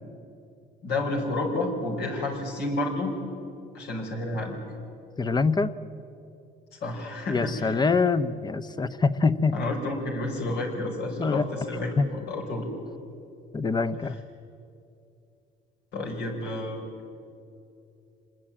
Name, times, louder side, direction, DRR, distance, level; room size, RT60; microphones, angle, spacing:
voice 1, 0.8-3.2 3.7-4.6 6.8-7.8 9.5-12.7 15.9-16.8, left 2 dB, 75° left, 1 dB, 5.2 m, -30 dB
voice 2, 5.2-5.7 7.3-9.6 11.2-11.5 12.0-12.1 13.5-14.2, left 4 dB, 25° left, 13 dB, 0.9 m, -24 dB
25.5 x 20.0 x 8.8 m, 2.6 s
cardioid pair, 110°, 17 cm